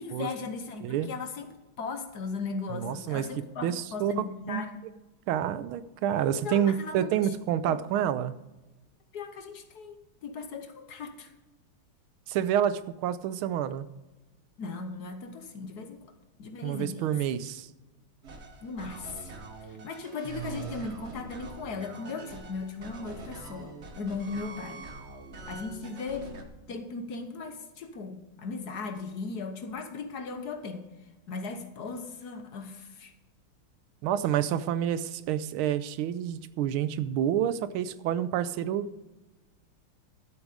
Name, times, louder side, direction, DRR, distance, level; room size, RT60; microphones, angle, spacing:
voice 1, 0.0-1.5 1.8-4.7 6.4-7.1 7.6-7.8 9.1-11.3 14.6-16.1 16.4-17.1 18.6-19.3 19.7-24.8 25.5-30.9 31.3-33.1, left 4 dB, 55° left, 7 dB, 1.4 m, -37 dB
voice 2, 2.7-3.3 3.6-4.1 4.5-4.6 5.3-8.3 12.3-13.9 16.6-17.7 20.4-20.8 34.0-38.9, right 10 dB, 85° right, 15 dB, 1.5 m, -28 dB
sound 1, 18.2-26.4, right 3 dB, 40° right, 1.2 m, -44 dB
12.5 x 8.1 x 5.0 m, 1.1 s
omnidirectional pair, 2.3 m